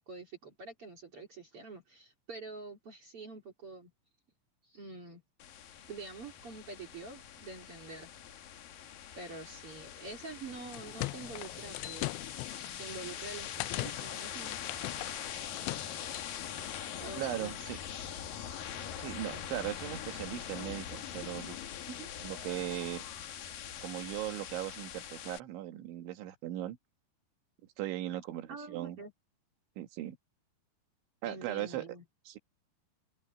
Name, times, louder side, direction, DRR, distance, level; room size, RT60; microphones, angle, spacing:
voice 1, 0.0-3.9 4.6-5.2 5.9-8.1 9.1-12.2 12.7-14.6 17.0-17.6 21.9-22.1 28.5-29.1 31.2-32.0, right 3 dB, 35° right, 2.9 m, -46 dB
sound 1, 5.4-25.4, left 9 dB, 60° left, 3.1 m, -43 dB
sound 2, 10.5-16.9, left 21 dB, 85° left, 2.6 m, -41 dB
voice 2, 17.2-17.8 19.0-21.6 22.2-23.1 23.8-26.8 27.8-29.0 29.8-30.2 31.2-31.8 32.3-32.4, right 14 dB, 80° right, 4.1 m, -38 dB
open air
omnidirectional pair, 5.4 m